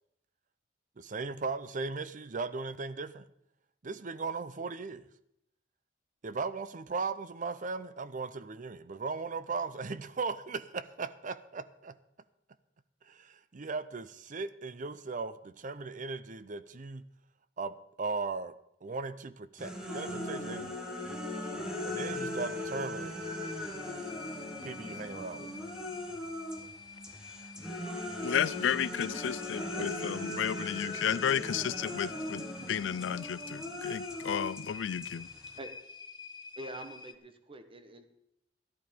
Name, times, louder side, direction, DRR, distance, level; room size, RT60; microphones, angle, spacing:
voice 1, 1.0-3.3 3.8-5.1 6.2-12.0 13.1-17.1 17.6-18.5 18.8-20.7 21.8-23.2 24.6-25.5, right 4 dB, 45° right, 0.6 m, -37 dB
sound 1, 19.6-26.7 27.0-35.6, left 1 dB, 5° right, 1.8 m, -39 dB
sound 2, 20.9-37.1, left 5 dB, 25° left, 0.6 m, -49 dB
sound 3, 23.1-33.5, equal, 50° left, 2.1 m, -57 dB
voice 2, 28.2-35.3, left 8 dB, 75° left, 0.4 m, -33 dB
voice 3, 36.6-38.0, right 1 dB, 30° right, 1.1 m, -45 dB
14.0 x 11.5 x 5.1 m
head